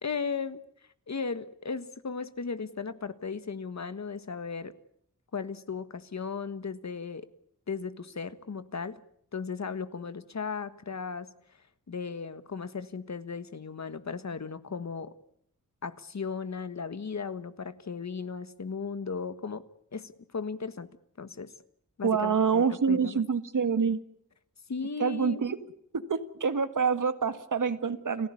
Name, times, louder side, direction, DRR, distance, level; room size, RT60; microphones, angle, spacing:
voice 1, 0.0-0.6 1.1-4.7 5.3-7.3 7.7-9.0 9.3-11.3 11.9-15.1 15.8-19.6 19.9-20.9 21.2-21.5 22.0-23.2 24.7-25.4, left 5 dB, 60° left, 13 dB, 1.5 m, -36 dB
voice 2, 22.0-24.0 25.0-25.6 25.9-28.3, right 6 dB, 75° right, 11 dB, 1.8 m, -26 dB
30.0 x 15.5 x 9.8 m, 0.72 s
wide cardioid pair, 90°, 31 cm